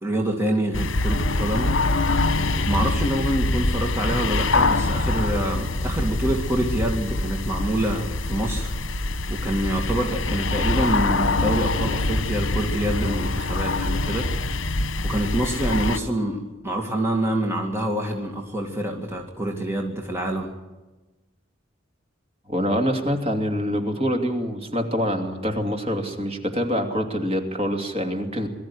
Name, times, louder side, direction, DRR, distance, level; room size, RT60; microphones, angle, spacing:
voice 1, 0.0-1.7 2.6-8.7 9.3-14.3 15.0-20.5, right 1 dB, 15° right, 1 dB, 2.3 m, -26 dB
sound 1, 0.7-16.0, left 2 dB, 75° left, 1.3 m, -24 dB
voice 2, 22.5-28.5, equal, 30° right, 4 dB, 2.7 m, -25 dB
23.0 x 14.0 x 9.8 m, 1.1 s
head